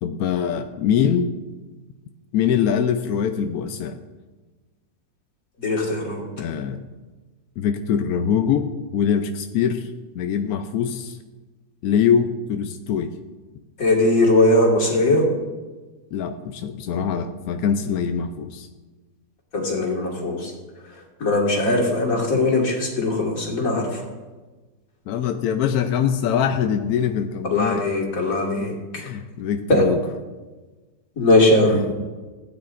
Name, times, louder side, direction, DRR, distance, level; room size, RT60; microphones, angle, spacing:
voice 1, 0.0-1.3 2.3-4.0 6.4-6.8 7.6-8.7 8.9-11.2 11.8-13.1 16.1-18.7 25.1-27.8 29.0-30.0, left 8 dB, 70° left, 6 dB, 0.9 m, -23 dB
voice 2, 5.6-6.2 13.8-15.2 19.5-20.5 20.9-24.0 27.5-28.7 29.7-29.8 31.2-31.8, left 2 dB, 50° left, -1 dB, 2.2 m, -20 dB
16.0 x 9.6 x 2.5 m, 1.3 s
omnidirectional pair, 2.0 m